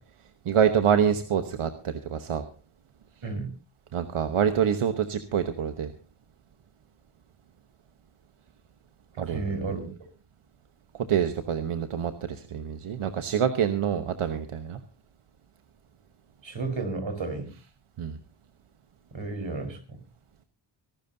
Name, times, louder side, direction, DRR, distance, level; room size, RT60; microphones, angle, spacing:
voice 1, 0.4-2.4 3.9-5.9 9.2-9.4 10.9-14.8 18.0-18.2, right 8 dB, 85° right, 8 dB, 1.1 m, -26 dB
voice 2, 9.3-9.8 16.4-17.5 19.1-20.0, right 3 dB, 65° right, 7 dB, 4.4 m, -32 dB
25.0 x 12.5 x 2.7 m, 0.37 s
cardioid pair, 70°, 49 cm